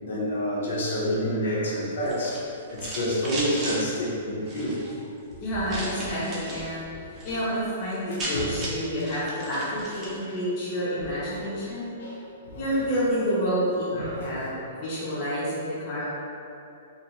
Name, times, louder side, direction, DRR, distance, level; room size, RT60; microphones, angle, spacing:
voice 1, 0.0-2.4 2.7-4.8 8.3-8.6 10.3-10.4 11.0-11.5 12.0-12.2 12.5-12.7 13.9-14.5, equal, 70° left, -5 dB, 0.7 m, -29 dB
sound 1, 2.0-3.8 4.4-4.9 5.7-6.7 7.0-7.4 7.7-7.8 8.0-10.2, right 1 dB, 20° right, 0.5 m, -36 dB
voice 2, 5.4-6.9 7.2-11.9 12.6-16.2, equal, 35° left, -8 dB, 0.5 m, -29 dB
2.4 x 2.4 x 2.9 m, 2.7 s
hypercardioid pair, 165°, 0 cm